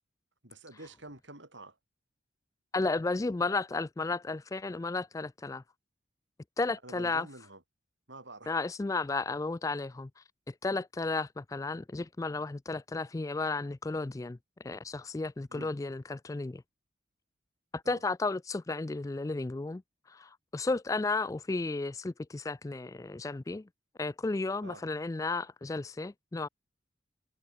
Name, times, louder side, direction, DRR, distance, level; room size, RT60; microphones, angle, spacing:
voice 1, 0.4-1.8 6.8-7.6 8.1-8.5 15.5-15.7 17.8-18.0 24.6-24.8, right 2 dB, 70° right, 6.9 m, -48 dB
voice 2, 2.7-5.6 6.6-7.3 8.5-14.4 14.6-16.6 17.7-19.8 20.1-23.7 24.0-26.5, left 3 dB, 15° left, 0.3 m, -33 dB
head